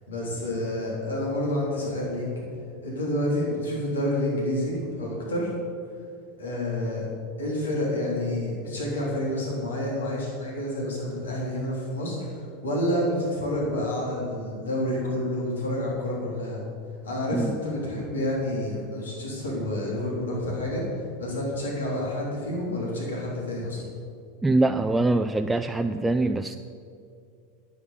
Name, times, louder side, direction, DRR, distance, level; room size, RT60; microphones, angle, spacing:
voice 1, 0.1-2.3 2.8-5.5 6.4-7.1 7.4-16.6 17.0-23.8, left 1 dB, 85° left, -4 dB, 3.3 m, -29 dB
voice 2, 24.4-26.6, right 2 dB, 10° right, 7 dB, 0.4 m, -23 dB
9.9 x 8.4 x 6.9 m, 2.4 s
hypercardioid pair, 95°, 0 cm